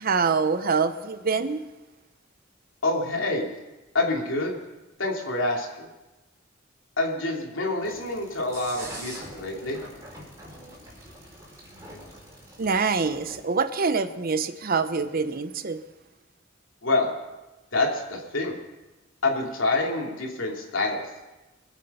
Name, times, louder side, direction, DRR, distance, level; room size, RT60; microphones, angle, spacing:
voice 1, 0.0-1.6 12.6-15.8, right 5 dB, 50° right, 11 dB, 0.8 m, -25 dB
voice 2, 2.8-3.5 3.9-4.5 5.0-5.9 7.0-9.8 16.8-17.1 17.7-18.6 19.2-21.0, left 2 dB, 80° left, 0 dB, 3.0 m, -27 dB
sound 1, 7.8-13.4, right 1 dB, 15° right, 5.3 m, -44 dB
24.0 x 8.4 x 5.6 m, 1.1 s
head